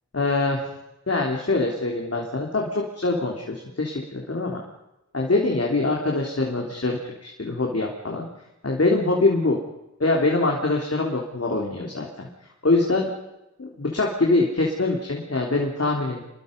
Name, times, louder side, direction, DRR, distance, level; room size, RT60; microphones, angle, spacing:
voice 1, 0.1-0.6 1.1-4.6 5.1-8.3 8.6-9.6 10.0-12.3 12.6-13.1 13.6-16.2, left 2 dB, 55° left, 0 dB, 3.5 m, -24 dB
26.5 x 21.5 x 5.4 m, 0.95 s
wide cardioid pair, 50°, 29 cm